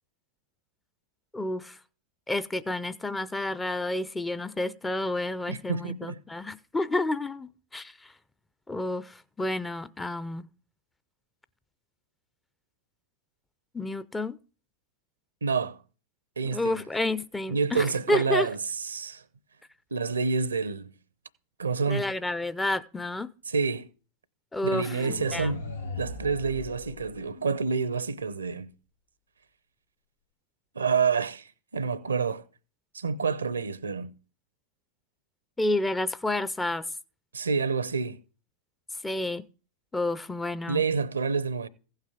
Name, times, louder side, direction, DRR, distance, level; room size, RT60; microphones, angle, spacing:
voice 1, 1.3-1.8 2.3-8.1 8.7-10.5 13.7-14.4 16.5-18.5 21.9-23.3 24.5-25.0 25.3-25.5 35.6-36.9 39.0-39.5 39.9-40.8, left 2 dB, 10° left, 0.5 m, -30 dB
voice 2, 5.5-6.2 15.4-15.8 16.4-16.8 17.5-18.6 18.8-19.2 19.9-20.9 21.6-22.1 23.5-23.9 24.6-25.7 26.0-28.7 30.7-32.4 32.9-34.1 37.3-38.2 40.7-41.7, right 5 dB, 75° right, 0.6 m, -28 dB
sound 1, 24.7-27.7, left 3 dB, 80° left, 1.6 m, -38 dB
15.5 x 5.6 x 5.0 m
figure-of-eight pair, 90°, 0 cm